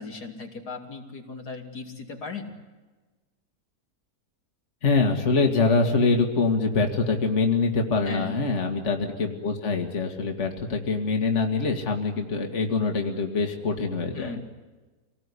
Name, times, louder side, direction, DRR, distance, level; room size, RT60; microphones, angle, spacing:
voice 1, 0.0-2.5 8.1-8.3 14.1-14.4, left 4 dB, 85° left, 2 dB, 3.6 m, -37 dB
voice 2, 4.8-14.4, left 4 dB, 45° left, 3 dB, 2.5 m, -24 dB
27.0 x 19.0 x 9.9 m, 1.2 s
omnidirectional pair, 1.7 m